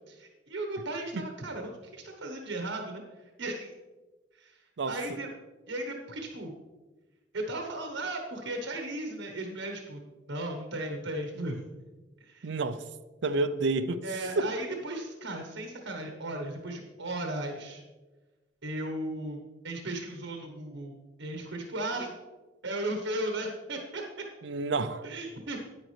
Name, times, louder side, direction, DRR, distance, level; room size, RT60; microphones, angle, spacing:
voice 1, 0.1-3.0 3.4-3.7 4.4-4.6 4.9-5.3 5.7-6.5 7.3-11.6 12.2-12.5 14.0-17.8 18.6-20.9 21.2-22.2 22.6-24.0 25.0-25.6, right 1 dB, 85° right, 1.1 m, -36 dB
voice 2, 4.8-5.2 12.4-12.8 13.2-14.0 14.4-14.5 24.4-25.1, right 3 dB, 70° right, 0.5 m, -29 dB
9.8 x 9.3 x 3.3 m
head